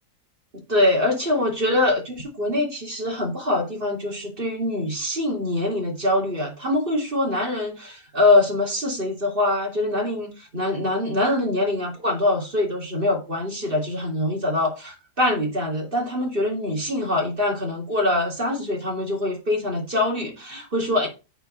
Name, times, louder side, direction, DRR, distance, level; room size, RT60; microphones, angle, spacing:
voice 1, 0.5-21.1, left 1 dB, 30° right, 3.0 m, -24 dB
8.4 x 4.6 x 6.0 m
omnidirectional pair, 1.8 m